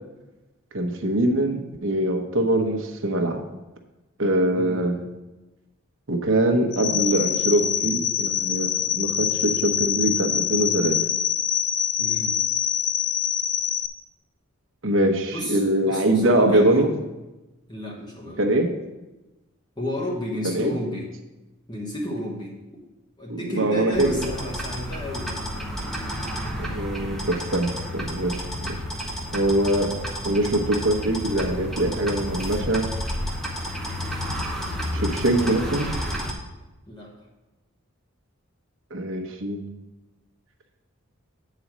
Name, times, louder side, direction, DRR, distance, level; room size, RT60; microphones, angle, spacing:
voice 1, 0.7-3.4 4.2-4.9 6.1-11.0 14.8-16.9 18.4-18.7 20.4-20.7 23.3-24.3 26.6-28.3 29.3-29.9 30.2-32.9 34.9-35.9 38.9-39.6, right 1 dB, 65° right, 3 dB, 1.0 m, -23 dB
voice 2, 4.5-4.9 12.0-12.3 15.3-17.0 17.7-18.5 19.8-21.1 21.7-22.8 23.2-25.4 36.9-37.1, left 1 dB, 20° left, -3 dB, 1.2 m, -32 dB
sound 1, 6.7-13.9, left 9 dB, 55° left, 0.4 m, -25 dB
sound 2, 23.9-36.3, equal, ahead, 0.9 m, -31 dB
8.6 x 4.1 x 6.1 m, 1.1 s
head